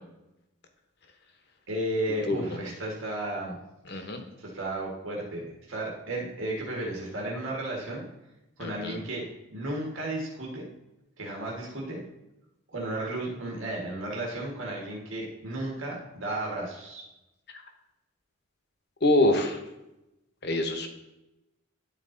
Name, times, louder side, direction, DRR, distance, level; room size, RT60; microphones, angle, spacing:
voice 1, 1.7-3.6 3.9-4.1 4.4-8.1 8.6-9.2 9.5-10.7 11.2-12.0 12.7-17.0, right 1 dB, 65° right, -2 dB, 1.6 m, -33 dB
voice 2, 2.3-2.6 3.9-4.2 8.6-9.0 17.5-17.6 19.0-19.6 20.4-20.9, left 1 dB, 50° left, 5 dB, 1.0 m, -25 dB
11.0 x 4.3 x 3.9 m, 0.93 s
head